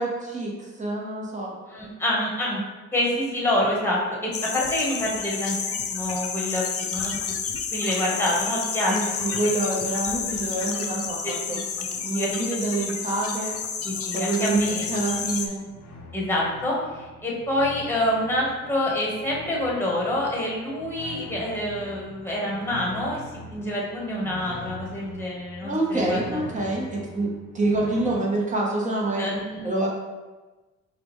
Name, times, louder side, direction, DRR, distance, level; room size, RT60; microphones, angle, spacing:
voice 1, 0.0-1.5 8.9-11.6 12.0-13.6 14.1-15.6 25.6-29.3 29.6-29.9, right 2 dB, 25° right, -2 dB, 1.0 m, -27 dB
voice 2, 1.7-2.6 2.9-5.6 5.9-7.3 7.7-9.1 11.2-12.3 13.8-14.8 16.1-26.4 29.2-29.6, left 1 dB, 10° left, -4 dB, 1.2 m, -27 dB
sound 1, 4.3-15.5, left 6 dB, 50° left, 0.5 m, -30 dB
sound 2, 14.4-28.2, left 1 dB, 85° left, 0.8 m, -43 dB
4.9 x 2.3 x 3.1 m, 1.2 s
cardioid pair, 90°, 30 cm